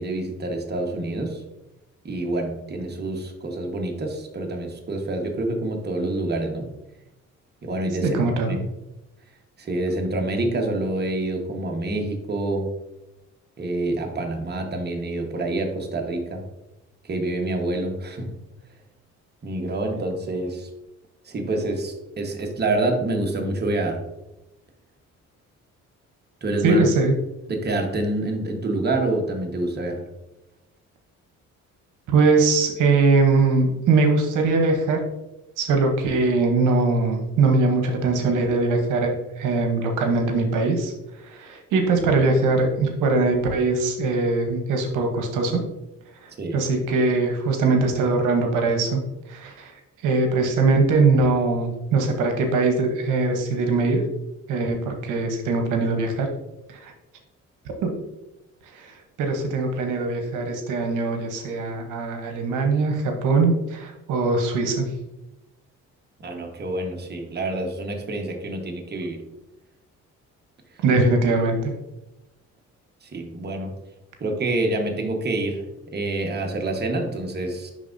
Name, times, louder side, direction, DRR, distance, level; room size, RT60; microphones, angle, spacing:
voice 1, 0.0-1.4 2.0-6.7 7.6-8.6 9.6-12.7 13.6-16.4 17.0-18.4 19.4-20.7 21.2-24.0 26.4-26.8 27.5-30.0 46.4-46.6 66.2-69.2 73.0-73.7 74.2-77.7, right 2 dB, 35° right, 2 dB, 1.2 m, -27 dB
voice 2, 8.0-8.5 26.6-27.1 32.1-35.0 35.6-40.9 41.2-45.6 46.2-49.0 49.3-49.8 50.0-54.0 54.5-56.3 56.7-56.9 57.8-57.9 58.7-64.9 70.8-71.7, right 3 dB, 85° right, 4 dB, 0.9 m, -21 dB
10.5 x 3.5 x 2.6 m, 0.95 s
cardioid pair, 90°, 30 cm